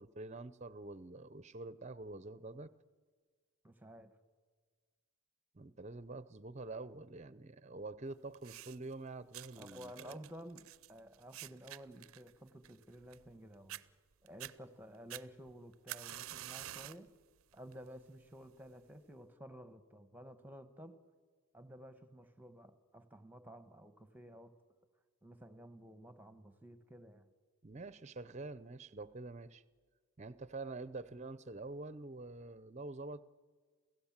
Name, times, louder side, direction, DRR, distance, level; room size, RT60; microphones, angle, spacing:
voice 1, 0.0-2.7 5.5-10.2 27.6-29.6 30.2-33.2, right 2 dB, 30° right, 0.6 m, -46 dB
voice 2, 3.6-4.1 9.5-13.8 14.2-17.1 17.5-21.0 21.5-24.6 25.2-27.3, equal, 10° right, 1.1 m, -53 dB
sound 1, 8.3-8.9 9.3-13.4 13.7-13.8 14.3-14.5 15.1-17.1 17.5-17.9 18.7-18.8, right 13 dB, 75° right, 0.5 m, -48 dB
28.5 x 16.0 x 7.3 m
head